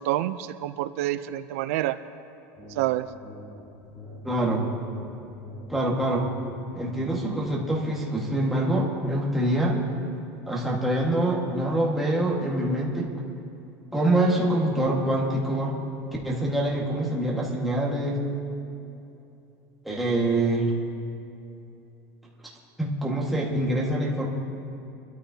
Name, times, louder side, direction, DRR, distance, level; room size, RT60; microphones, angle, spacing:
voice 1, 0.0-2.0 2.7-3.1, right 14 dB, 75° right, 12 dB, 0.4 m, -27 dB
sound 1, 2.6-7.8, left 1 dB, 30° left, 3.6 m, -44 dB
voice 2, 4.2-4.6 5.7-6.3 6.7-9.8 10.5-13.1 13.9-15.7 16.2-18.2 19.8-20.7 22.8-24.3, right 1 dB, ahead, -5 dB, 1.5 m, -25 dB
23.5 x 13.0 x 2.7 m, 2.8 s
cardioid pair, 175°, 8 cm